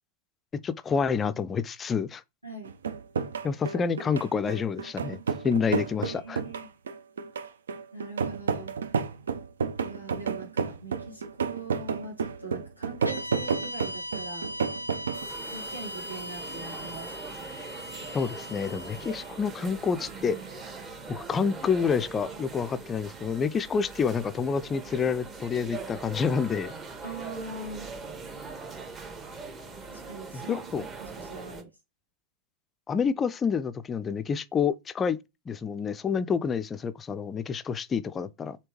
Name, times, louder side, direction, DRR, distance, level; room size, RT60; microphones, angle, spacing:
voice 1, 0.6-2.2 3.4-5.2 5.4-6.4 18.1-20.4 21.1-26.7 30.3-30.8 32.9-35.2 35.5-38.6, left 6 dB, 20° left, 0.3 m, -28 dB
voice 2, 2.4-2.7 6.0-6.7 7.9-8.7 9.8-14.4 15.4-17.1 27.0-27.9 29.9-30.6 31.0-31.7, right 3 dB, 90° right, 1.4 m, -42 dB
sound 1, 2.6-15.3, right 5 dB, 65° right, 0.4 m, -31 dB
sound 2, 13.0-21.3, left 1 dB, 85° left, 0.5 m, -40 dB
sound 3, 15.1-31.6, right 4 dB, 20° right, 1.0 m, -41 dB
3.4 x 2.7 x 3.0 m
figure-of-eight pair, 90°, 0 cm